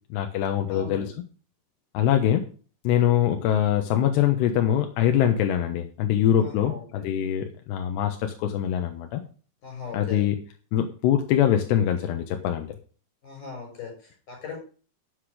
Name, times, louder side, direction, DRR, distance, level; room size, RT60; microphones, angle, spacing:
voice 1, 0.1-1.1 1.9-2.4 2.8-9.2 9.9-10.4 10.7-12.7, left 10 dB, 75° left, 5 dB, 2.7 m, -23 dB
voice 2, 0.6-1.1 6.4-7.1 9.6-10.2 13.2-14.6, left 5 dB, 40° left, 2 dB, 7.9 m, -39 dB
12.5 x 8.0 x 5.0 m, 0.39 s
omnidirectional pair, 5.8 m